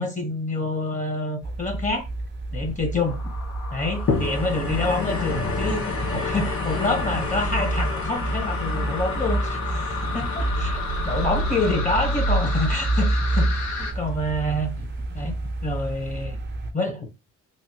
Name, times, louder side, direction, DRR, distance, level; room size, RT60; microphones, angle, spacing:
voice 1, 0.0-2.1 2.5-3.2 3.7-14.9 15.1-15.3 15.6-16.4 16.7-17.1, left 2 dB, 25° left, 1.2 m, -27 dB
sound 1, 1.4-16.7, right 2 dB, 35° right, 0.7 m, -28 dB
sound 2, 3.0-13.9, left 4 dB, 65° left, 1.3 m, -34 dB
sound 3, 4.1-14.6 15.2-15.3, left 5 dB, 45° left, 1.6 m, -32 dB
3.2 x 2.5 x 2.9 m
cardioid pair, 90°, 30 cm